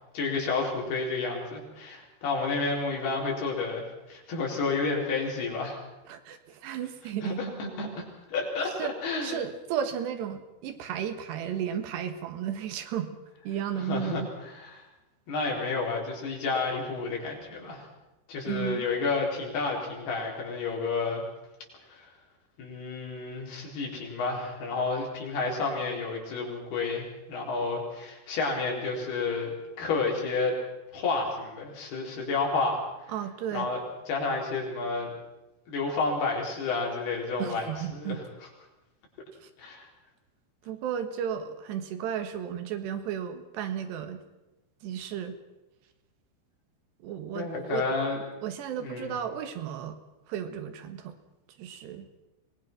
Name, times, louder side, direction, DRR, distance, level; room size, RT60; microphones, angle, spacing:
voice 1, 0.1-5.8 7.2-9.4 13.8-14.8 15.3-17.9 18.3-21.2 21.9-22.1 22.6-30.6 30.9-32.8 33.5-35.1 35.7-38.5 39.6-39.9 47.3-48.2 48.8-49.2, left 3 dB, 65° left, -1 dB, 6.0 m, -31 dB
voice 2, 6.1-7.4 8.8-8.9 9.2-13.2 13.5-14.3 18.5-18.9 33.1-33.7 37.4-38.2 39.4-39.5 40.6-44.2 44.8-45.4 47.0-48.0 48.4-50.0 50.3-51.2 51.6-52.1, right 9 dB, 85° right, 8 dB, 3.6 m, -34 dB
24.5 x 19.5 x 6.0 m, 1.0 s
omnidirectional pair, 4.8 m